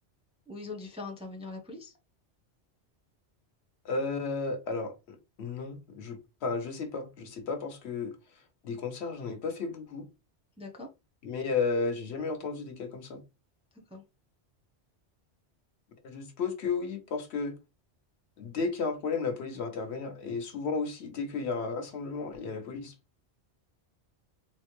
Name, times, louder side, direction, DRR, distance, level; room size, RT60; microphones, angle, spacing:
voice 1, 0.5-1.9 10.6-10.9 13.9-14.0, left 3 dB, 5° right, 0.5 m, -41 dB
voice 2, 3.8-8.2 8.6-10.1 11.2-13.2 16.0-17.5 18.4-22.9, left 4 dB, 70° left, 1.0 m, -33 dB
3.8 x 2.1 x 3.0 m
omnidirectional pair, 1.2 m